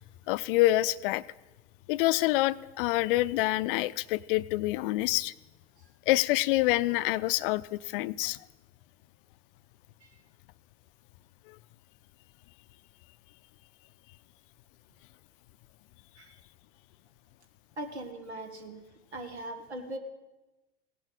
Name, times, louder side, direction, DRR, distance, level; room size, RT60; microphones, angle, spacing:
voice 1, 0.3-1.2 1.9-5.3 6.1-8.4 11.5-11.6, left 18 dB, 55° left, 16 dB, 0.5 m, -26 dB
voice 2, 17.8-18.8 19.1-20.0, right 1 dB, 90° right, 7 dB, 1.5 m, -40 dB
17.0 x 11.5 x 4.9 m, 1.1 s
hypercardioid pair, 85°, 32 cm